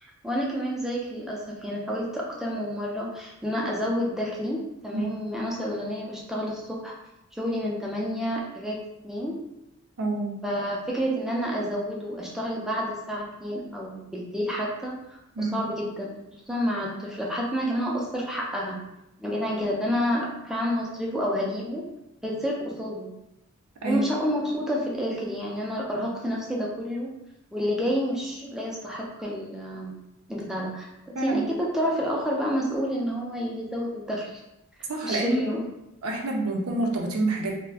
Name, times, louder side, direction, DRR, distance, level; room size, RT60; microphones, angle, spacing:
voice 1, 0.0-6.9 7.3-9.4 10.4-16.1 16.5-18.8 19.2-21.8 22.2-23.1 23.8-27.1 27.5-30.0 30.3-34.4 35.0-35.6, equal, ahead, -3 dB, 0.4 m, -29 dB
voice 2, 10.0-10.4 15.3-15.6 23.8-24.0 31.1-31.4 34.9-35.4 36.0-37.5, right 2 dB, 80° right, 1 dB, 0.5 m, -27 dB
2.4 x 2.1 x 3.3 m, 0.90 s
head